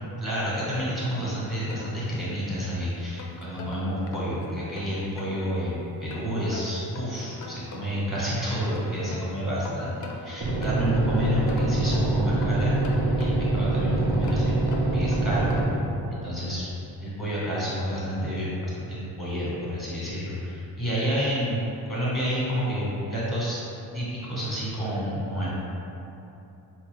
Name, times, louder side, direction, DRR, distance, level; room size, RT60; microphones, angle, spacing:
voice 1, 0.2-12.7 13.2-14.6 14.9-15.5 16.1-16.7 17.0-21.6 21.9-23.6 23.9-25.6, equal, ahead, -8 dB, 1.1 m, -29 dB
sound 1, 1.2-2.5 3.0-5.4 6.1-8.1 8.5-11.0 11.5-13.6 14.1-15.9, left 3 dB, 50° left, 0.4 m, -42 dB
sound 2, 10.4-15.6, right 2 dB, 35° right, 0.7 m, -24 dB
4.0 x 2.5 x 3.1 m, 2.9 s
cardioid pair, 110°, 40 cm